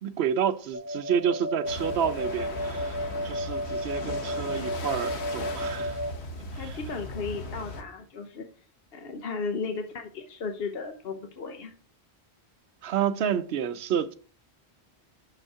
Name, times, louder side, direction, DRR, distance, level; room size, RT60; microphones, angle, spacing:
voice 1, 0.0-6.0 12.8-14.1, right 8 dB, 75° right, 0.9 m, -29 dB
sound 1, 0.7-6.1, equal, 25° right, 0.4 m, -33 dB
sound 2, 1.6-7.8, left 2 dB, 85° left, 1.3 m, -37 dB
voice 2, 6.5-8.5 8.9-11.7, left 4 dB, 65° left, 1.0 m, -35 dB
6.3 x 5.3 x 4.8 m
omnidirectional pair, 1.1 m